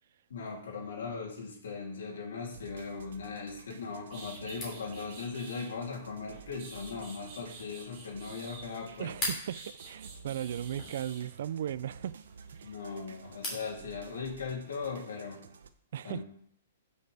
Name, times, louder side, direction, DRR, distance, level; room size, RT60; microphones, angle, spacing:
voice 1, 0.3-9.1 12.6-15.4 16.0-16.2, left 5 dB, 85° left, 3.1 m, -39 dB
sound 1, 2.5-15.7, right 6 dB, 85° right, 0.9 m, -52 dB
sound 2, 4.1-5.7 6.3-9.0 9.5-11.2, right 4 dB, 30° right, 2.5 m, -49 dB
sound 3, 4.4-13.7, left 1 dB, 15° left, 2.9 m, -45 dB
voice 2, 9.0-12.2 12.5-12.8 15.9-16.2, right 10 dB, 50° right, 0.4 m, -37 dB
15.0 x 6.4 x 3.5 m
hypercardioid pair, 175°, 0 cm